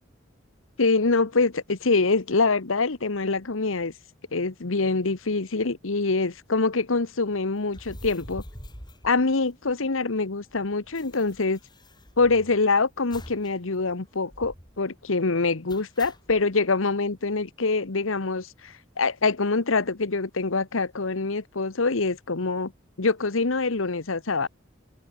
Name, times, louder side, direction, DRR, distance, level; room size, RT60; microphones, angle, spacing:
voice 1, 0.8-3.9 4.3-8.4 9.0-11.6 12.2-22.7 23.0-24.5, left 3 dB, 85° left, 1.2 m, -25 dB
sound 1, 7.7-9.9 10.2-10.3 10.5-12.6 13.1-13.5 13.8-13.9 14.3-14.8 15.7-16.4, left 1 dB, 20° left, 6.8 m, -44 dB
head